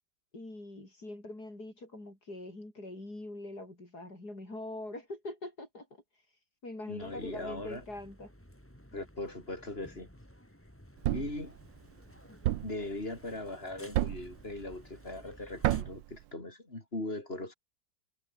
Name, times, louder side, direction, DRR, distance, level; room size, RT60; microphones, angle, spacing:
voice 1, 0.3-6.0 6.6-8.3, left 2 dB, 55° left, 8.2 m, -43 dB
voice 2, 6.9-7.8 8.9-10.1 11.1-11.6 12.6-17.5, left 2 dB, 30° left, 4.8 m, -39 dB
sound 1, 7.0-15.8, equal, 5° left, 6.0 m, -55 dB
Thump thud, 11.0-11.4 12.4-12.8 13.9-14.3 15.6-16.0, right 14 dB, 80° right, 1.4 m, -29 dB
omnidirectional pair, 2.0 m